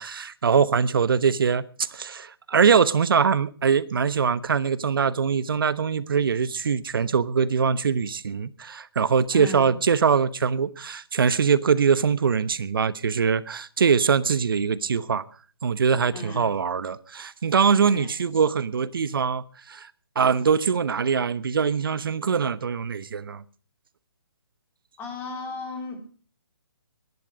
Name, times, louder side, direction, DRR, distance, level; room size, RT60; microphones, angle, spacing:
voice 1, 0.0-15.2 15.6-19.9 20.2-23.4, right 6 dB, 60° right, 1.0 m, -23 dB
voice 2, 9.3-9.8 16.1-16.5 17.9-18.4 25.0-26.1, left 3 dB, 15° left, 3.9 m, -36 dB
20.5 x 11.0 x 5.1 m
figure-of-eight pair, 150°, 13 cm